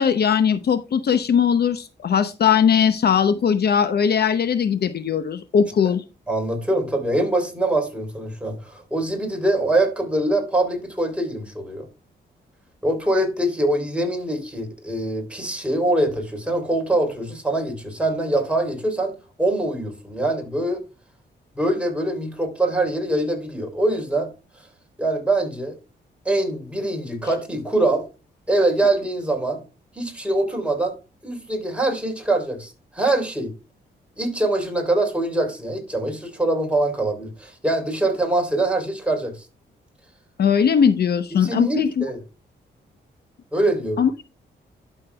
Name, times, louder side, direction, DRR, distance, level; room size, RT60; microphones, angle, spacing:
voice 1, 0.0-6.0 40.4-42.1 44.0-44.2, left 7 dB, 60° left, 0.8 m, -19 dB
voice 2, 6.3-11.9 12.8-20.8 21.5-24.3 25.0-25.8 26.2-28.0 28.5-29.6 29.9-31.0 31.2-33.5 34.2-39.4 41.4-42.2 43.5-44.0, right 1 dB, 5° right, 3.4 m, -23 dB
12.0 x 6.6 x 2.3 m
cardioid pair, 85°, 19 cm